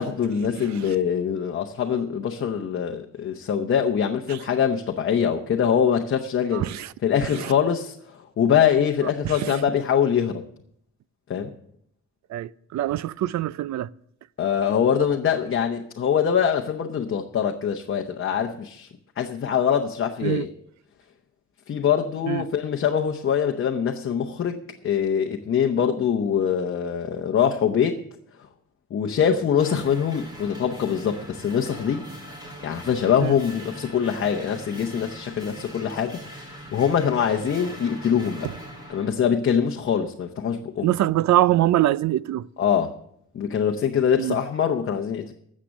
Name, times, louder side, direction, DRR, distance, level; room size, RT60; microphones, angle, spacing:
voice 1, 0.0-6.6 7.0-10.4 11.3-11.5 14.4-18.9 19.2-20.5 21.7-28.0 28.9-32.0 32.6-38.5 38.9-40.9 42.6-42.9 43.3-45.3, left 8 dB, 45° left, 0.8 m, -23 dB
voice 2, 0.5-0.9 4.3-4.4 6.5-6.9 7.3-7.5 9.2-9.6 12.3-13.9 20.2-20.5 22.3-22.5 33.2-33.4 38.4-38.5 40.8-42.5 44.2-44.4, right 14 dB, 70° right, 0.4 m, -24 dB
sound 1, 29.6-39.1, equal, 15° right, 3.1 m, -41 dB
13.0 x 7.5 x 6.4 m
wide cardioid pair, 165°, 29 cm